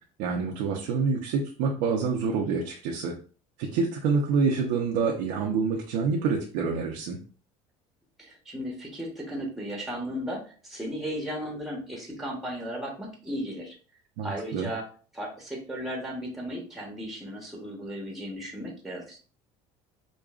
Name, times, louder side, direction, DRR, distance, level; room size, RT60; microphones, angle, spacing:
voice 1, 0.2-3.1 3.6-7.2 14.2-14.7, right 5 dB, 80° right, 0 dB, 0.7 m, -27 dB
voice 2, 8.2-13.7 14.2-14.8 15.1-19.2, equal, ahead, -1 dB, 1.1 m, -35 dB
5.0 x 2.2 x 2.4 m, 0.39 s
cardioid pair, 125°, 14 cm